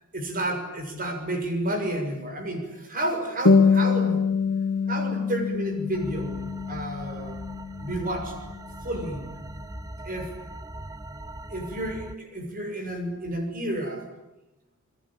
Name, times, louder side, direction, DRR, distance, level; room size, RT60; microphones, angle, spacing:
voice 1, 0.1-4.3 4.9-7.4 7.8-8.4 8.8-9.3 10.0-10.3 11.5-14.0, right 1 dB, 40° right, 6 dB, 6.6 m, -31 dB
sound 1, 3.4-8.4, left 5 dB, 85° left, 2.1 m, -24 dB
sound 2, 5.9-12.1, right 1 dB, 15° right, 1.1 m, -40 dB
28.0 x 22.5 x 8.9 m, 1.0 s
head